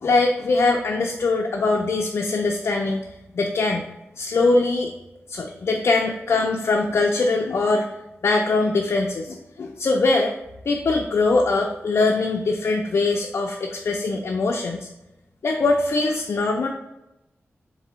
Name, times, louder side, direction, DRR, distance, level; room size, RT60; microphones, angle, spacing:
voice 1, 0.0-3.0 3.3-3.8 4.2-4.9 5.3-7.9 8.2-10.3 10.6-14.9 15.4-16.7, left 3 dB, 65° left, 1 dB, 0.4 m, -22 dB
3.8 x 2.6 x 4.2 m, 0.91 s
wide cardioid pair, 90°, 5 cm